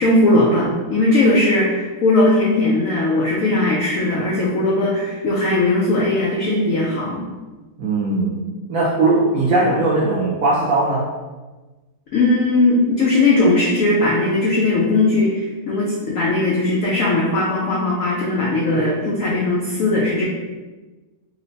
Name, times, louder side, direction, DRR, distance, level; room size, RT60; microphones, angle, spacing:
voice 1, 0.0-7.3 12.1-20.3, left 2 dB, 90° left, -5 dB, 0.7 m, -18 dB
voice 2, 7.8-8.4 8.7-11.1 18.7-18.9, right 2 dB, 70° right, -6 dB, 0.8 m, -19 dB
3.0 x 2.1 x 3.9 m, 1.2 s
omnidirectional pair, 2.0 m